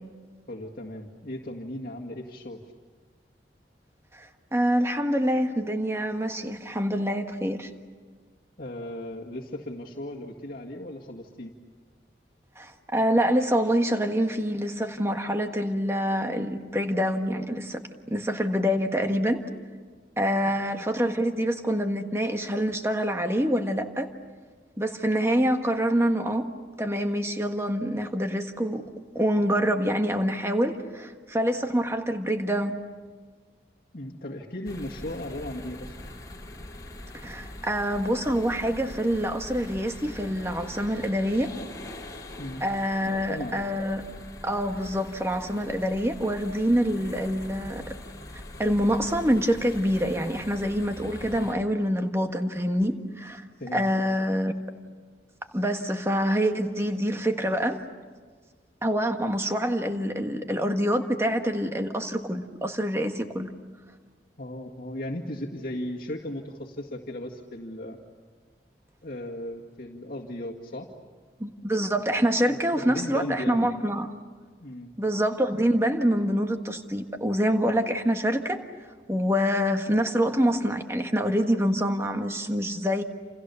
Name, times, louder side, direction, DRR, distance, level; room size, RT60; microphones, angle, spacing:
voice 1, 0.5-2.6 8.6-11.5 33.9-36.1 42.4-42.7 43.0-43.6 53.6-53.8 54.2-54.4 64.4-68.0 69.0-70.9 72.5-73.7 74.6-74.9, left 1 dB, 50° left, -2 dB, 2.0 m, -36 dB
voice 2, 4.1-7.7 12.6-17.8 18.1-19.4 20.2-24.1 24.8-26.5 26.8-28.8 29.1-32.8 37.2-41.5 42.6-44.1 44.4-47.8 48.6-53.4 53.7-54.5 55.5-57.8 58.8-63.5 71.4-74.1 75.0-78.6 79.1-83.0, equal, 15° right, 5 dB, 1.5 m, -26 dB
sound 1, 34.6-51.5, left 1 dB, 20° left, 2.9 m, -42 dB
29.0 x 28.5 x 7.0 m, 1.5 s
head